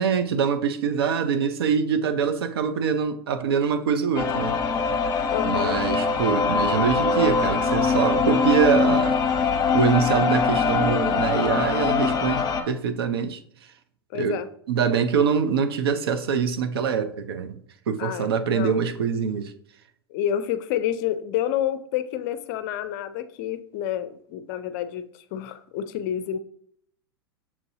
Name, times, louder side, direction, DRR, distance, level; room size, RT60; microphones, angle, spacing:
voice 1, 0.0-4.6 5.4-9.2 9.7-13.4 14.1-14.4 14.7-17.6 17.9-19.5, right 6 dB, 70° right, 0.6 m, -24 dB
sound 1, 4.1-12.6, left 5 dB, 30° left, 0.9 m, -23 dB
voice 2, 5.3-5.8 14.1-14.5 18.0-18.7 20.1-25.0 25.3-26.4, left 10 dB, 50° left, 0.5 m, -29 dB
6.9 x 2.7 x 2.7 m
hypercardioid pair, 95°, 13 cm